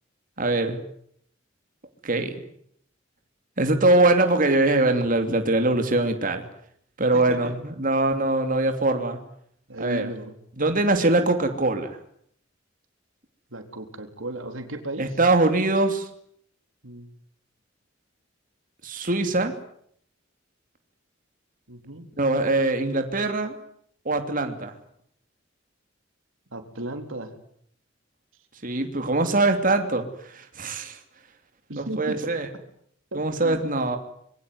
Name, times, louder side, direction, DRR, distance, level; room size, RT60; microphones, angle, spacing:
voice 1, 0.4-0.8 2.0-2.3 3.6-6.4 7.0-9.2 9.8-10.1 10.6-12.0 15.0-16.1 18.8-19.5 22.2-23.6 24.0-24.7 28.6-31.0 31.8-32.5 33.1-34.0, right 2 dB, 45° right, 6 dB, 2.9 m, -22 dB
voice 2, 7.1-7.5 9.7-10.3 13.5-15.2 16.8-17.1 21.7-22.1 26.5-27.3 31.7-32.2 33.1-33.6, right 1 dB, 85° right, 6 dB, 3.8 m, -35 dB
25.5 x 22.5 x 9.5 m, 0.68 s
head